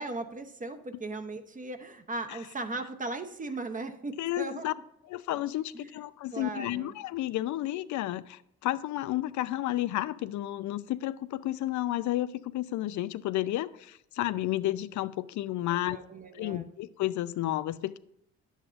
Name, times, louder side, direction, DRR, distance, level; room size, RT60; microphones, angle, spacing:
voice 1, 0.0-4.7 5.7-6.0 6.3-6.9 15.7-16.7, right 3 dB, 25° right, 8 dB, 0.8 m, -38 dB
voice 2, 4.2-4.7 5.1-16.0 16.4-18.0, left 14 dB, 75° left, 15 dB, 0.5 m, -32 dB
10.5 x 8.0 x 2.5 m, 0.74 s
cardioid pair, 90°, 30 cm